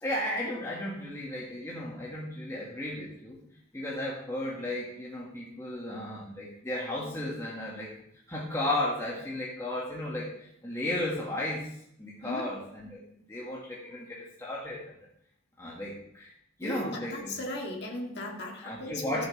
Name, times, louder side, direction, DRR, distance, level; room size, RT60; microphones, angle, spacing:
voice 1, 0.0-3.4 3.7-7.9 8.3-11.7 12.0-14.8 15.6-16.3 16.6-17.4 18.6-19.3, left 1 dB, 15° left, -5 dB, 1.7 m, -34 dB
voice 2, 16.6-19.3, left 1 dB, 55° left, 0 dB, 1.9 m, -37 dB
14.0 x 7.4 x 3.3 m, 0.69 s
head